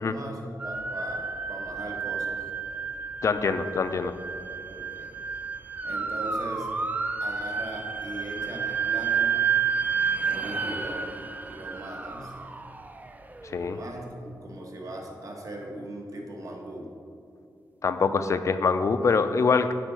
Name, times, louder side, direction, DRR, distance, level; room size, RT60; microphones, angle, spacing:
voice 1, 0.0-2.5 3.6-3.7 4.7-5.1 5.8-6.7 7.2-9.5 10.3-11.1 11.5-12.3 13.6-16.9, right 1 dB, 55° right, 0 dB, 1.1 m, -39 dB
sound 1, 0.6-13.7, right 6 dB, 25° right, 0.4 m, -31 dB
voice 2, 3.2-4.1 13.5-13.8 17.8-19.7, left 4 dB, 45° left, 10 dB, 0.4 m, -24 dB
9.8 x 3.9 x 6.2 m, 2.5 s
wide cardioid pair, 140°, 7 cm